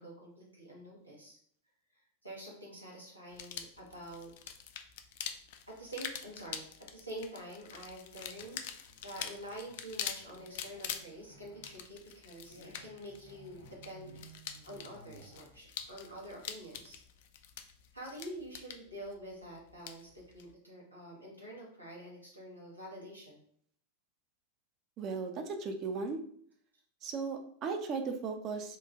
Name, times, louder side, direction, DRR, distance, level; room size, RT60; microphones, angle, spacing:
voice 1, 0.0-1.4 2.2-4.5 5.7-14.1 14.6-17.0 17.9-23.4, right 1 dB, 90° right, -4 dB, 1.1 m, -47 dB
sound 1, 3.3-20.5, left 8 dB, 50° left, 0.3 m, -45 dB
sound 2, 8.3-17.2, right 2 dB, 85° left, 0.9 m, -58 dB
voice 2, 25.0-26.2 27.0-28.8, right 4 dB, 35° right, 6 dB, 0.5 m, -36 dB
3.0 x 2.4 x 3.4 m, 0.62 s
figure-of-eight pair, 90°, 0 cm